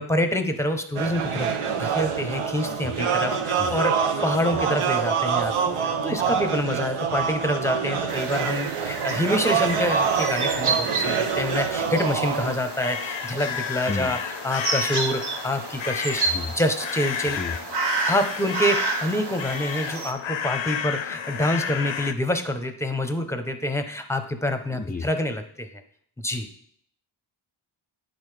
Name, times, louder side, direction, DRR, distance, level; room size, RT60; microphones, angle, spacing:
voice 1, 0.0-1.5 1.8-16.2 16.6-17.4 18.1-25.7 26.2-26.5, left 1 dB, 5° left, 7 dB, 0.7 m, -27 dB
sound 1, 1.0-12.5, right 6 dB, 85° right, 0.8 m, -26 dB
sound 2, 8.1-20.1, right 4 dB, 55° right, 0.8 m, -31 dB
sound 3, 12.4-22.1, left 8 dB, 65° left, 0.6 m, -32 dB
voice 2, 24.7-25.1, left 4 dB, 20° left, 4 dB, 0.3 m, -31 dB
10.5 x 4.0 x 3.3 m, 0.62 s
wide cardioid pair, 70°, 50 cm